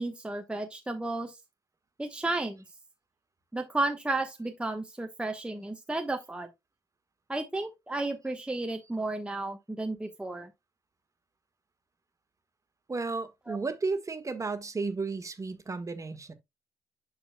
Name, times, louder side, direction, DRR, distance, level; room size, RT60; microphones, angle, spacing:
voice 1, 0.0-1.4 2.0-2.6 3.5-6.5 7.3-10.5 13.5-13.6, right 2 dB, 10° right, 1.1 m, -33 dB
voice 2, 12.9-16.3, right 4 dB, 30° right, 1.5 m, -33 dB
11.5 x 4.1 x 2.2 m
hypercardioid pair, 45°, 11 cm